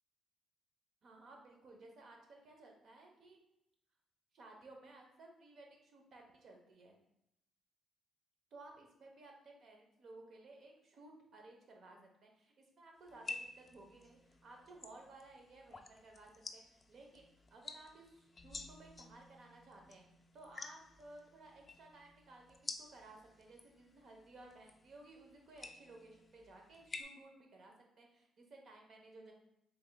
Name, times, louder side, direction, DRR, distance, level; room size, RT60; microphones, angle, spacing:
voice 1, 1.0-3.4 4.3-7.0 8.5-20.0 20.3-29.3, right 2 dB, 60° right, 1 dB, 0.9 m, -58 dB
sound 1, 13.1-27.0, left 3 dB, 30° left, 0.4 m, -52 dB
4.6 x 3.4 x 2.2 m, 0.81 s
cardioid pair, 90°, 0 cm